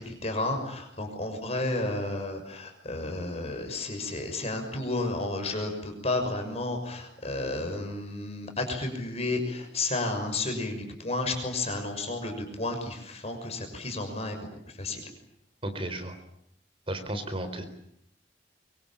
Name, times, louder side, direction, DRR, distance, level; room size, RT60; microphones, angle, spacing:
voice 1, 0.0-14.5 14.8-15.0, left 2 dB, 35° left, 5 dB, 6.2 m, -32 dB
voice 2, 15.6-16.2 16.9-17.6, right 1 dB, 30° right, 8 dB, 4.0 m, -33 dB
25.0 x 24.0 x 8.8 m, 0.72 s
head